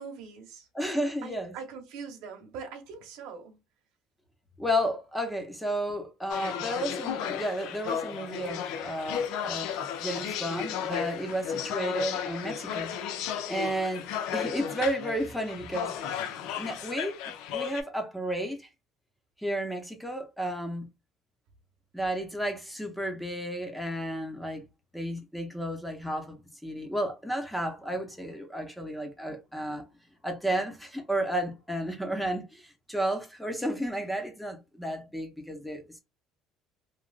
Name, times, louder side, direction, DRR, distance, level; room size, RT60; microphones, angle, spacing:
voice 1, 0.0-0.7 1.2-3.6, right 5 dB, 65° right, 1.0 m, -42 dB
voice 2, 0.7-1.6 4.6-14.1 14.3-15.9 16.6-17.1 17.5-18.6 19.4-20.9 21.9-24.6 24.9-29.8 30.2-36.0, equal, ahead, 0.7 m, -32 dB
sound 1, 6.3-17.8, left 8 dB, 65° left, 0.5 m, -34 dB
3.1 x 2.4 x 2.3 m
cardioid pair, 170°, 0 cm